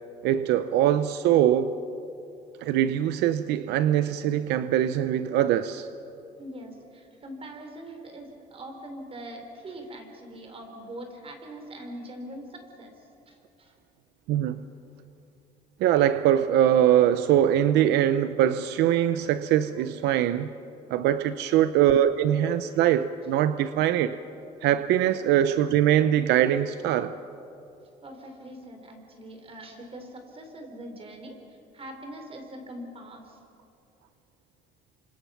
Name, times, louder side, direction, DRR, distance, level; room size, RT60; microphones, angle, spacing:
voice 1, 0.2-1.7 2.6-5.9 14.3-14.6 15.8-20.5 20.9-24.2 24.6-27.1, right 11 dB, 85° right, 12 dB, 0.7 m, -22 dB
voice 2, 6.4-13.7 21.2-21.5 28.0-33.4, right 1 dB, 35° right, 5 dB, 4.4 m, -42 dB
28.5 x 26.0 x 5.9 m, 2.7 s
cardioid pair, 110°, 17 cm